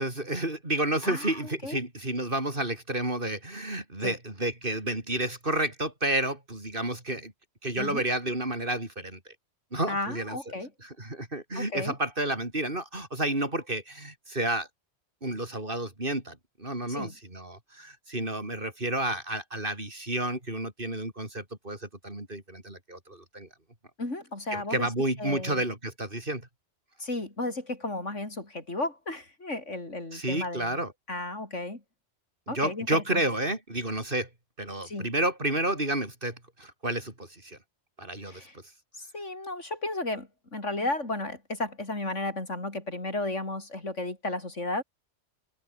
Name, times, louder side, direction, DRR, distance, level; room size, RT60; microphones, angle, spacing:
voice 1, 0.0-7.3 7.6-9.2 9.7-10.4 10.8-14.7 15.2-23.5 24.5-26.5 30.1-30.9 32.5-34.3 34.6-37.6 38.0-38.4, right 1 dB, 45° right, 5.1 m, -31 dB
voice 2, 1.0-1.8 4.0-4.2 7.8-8.0 9.9-10.7 11.6-11.9 16.9-17.1 24.0-24.9 25.2-25.6 27.0-30.8 31.1-31.8 32.5-33.2 34.8-35.1 38.3-38.5 39.0-44.8, left 2 dB, 85° left, 5.7 m, -34 dB
omnidirectional pair, 1.2 m